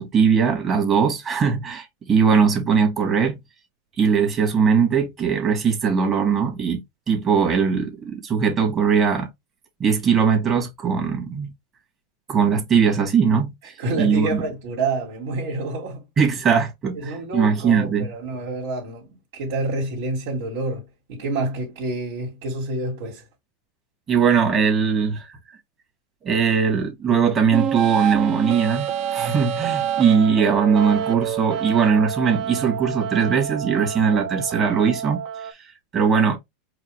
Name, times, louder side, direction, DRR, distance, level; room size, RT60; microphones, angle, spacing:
voice 1, 0.0-3.4 4.0-9.3 9.8-11.5 12.3-14.4 16.2-18.1 24.1-25.4 26.2-35.6 35.9-36.4, right 6 dB, 30° right, 1.7 m, -20 dB
voice 2, 13.8-16.0 16.9-20.8 21.1-23.2, right 2 dB, 75° right, 2.1 m, -28 dB
sound 1, 27.5-35.5, right 9 dB, 50° right, 0.8 m, -27 dB
4.8 x 2.3 x 3.4 m
supercardioid pair, 130°, 0 cm